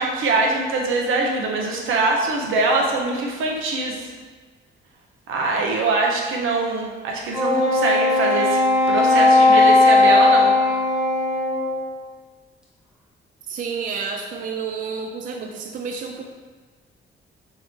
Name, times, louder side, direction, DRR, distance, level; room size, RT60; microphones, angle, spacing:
voice 1, 0.0-4.1 5.3-8.6 8.9-10.5, right 3 dB, 80° right, -1 dB, 0.8 m, -23 dB
Wind instrument woodwind instrument, 7.3-11.9, left 2 dB, 5° right, 0.9 m, -17 dB
voice 2, 13.5-16.2, right 5 dB, 45° right, 3 dB, 0.4 m, -30 dB
4.2 x 3.6 x 3.2 m, 1.4 s
cardioid pair, 150°, 20 cm